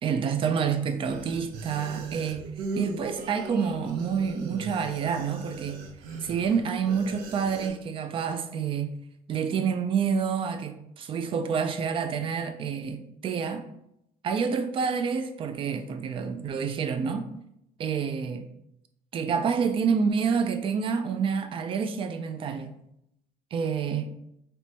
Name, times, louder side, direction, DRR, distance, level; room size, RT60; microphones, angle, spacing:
voice 1, 0.0-2.5 2.8-5.8 6.2-8.9 9.3-13.6 14.2-17.3 17.8-18.5 19.1-22.7 23.5-24.1, right 6 dB, 35° right, 0.4 m, -28 dB
sound 1, 1.0-7.7, right 3 dB, 90° right, 0.5 m, -39 dB
4.3 x 2.1 x 2.6 m
cardioid pair, 125°, 15 cm